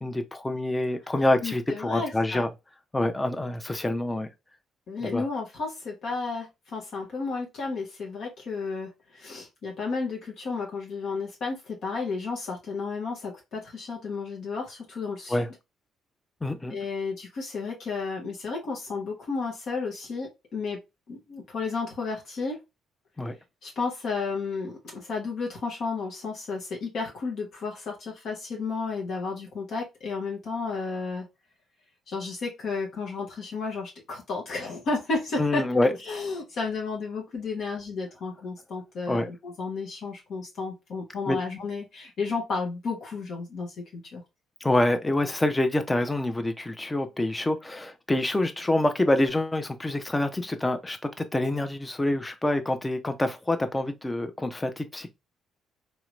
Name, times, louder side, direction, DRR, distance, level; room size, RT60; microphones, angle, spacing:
voice 1, 0.0-2.5 2.9-4.3 5.0-5.3 15.3-15.5 16.4-16.8 23.2-23.3 35.4-35.9 39.1-39.3 41.3-41.4 44.6-55.1, left 1 dB, 15° left, 0.6 m, -26 dB
voice 2, 1.4-2.4 4.9-15.4 16.7-20.8 21.1-22.6 23.6-31.2 32.1-44.2, left 4 dB, 50° left, 0.9 m, -32 dB
3.2 x 2.9 x 2.4 m
figure-of-eight pair, 45°, 0 cm